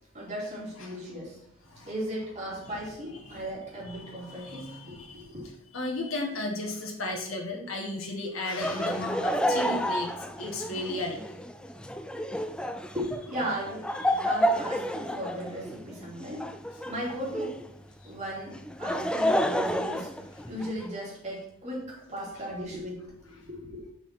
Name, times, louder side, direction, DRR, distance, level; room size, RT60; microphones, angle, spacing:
voice 1, 0.1-1.4 1.9-5.4 12.9-13.9 14.2-16.4 16.8-17.6 18.0-23.9, equal, 35° right, -6 dB, 3.1 m, -37 dB
voice 2, 3.8-5.3 5.7-10.1 10.4-11.2 14.1-14.2 18.0-18.1, left 2 dB, 90° left, 0 dB, 1.8 m, -34 dB
Laughter, 8.6-17.7 18.5-20.9, equal, 5° left, 0.3 m, -30 dB
5.9 x 5.8 x 4.4 m, 0.78 s
head